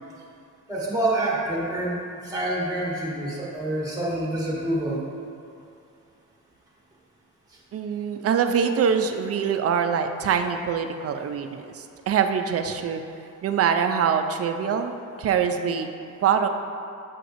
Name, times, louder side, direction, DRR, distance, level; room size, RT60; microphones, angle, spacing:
voice 1, 0.7-2.0 2.2-5.0, right 1 dB, 10° right, -5 dB, 1.2 m, -27 dB
voice 2, 7.7-13.0 13.4-15.9 16.2-16.5, right 7 dB, 50° right, 7 dB, 0.4 m, -24 dB
6.5 x 5.8 x 2.6 m, 2.6 s
cardioid pair, 110°, 31 cm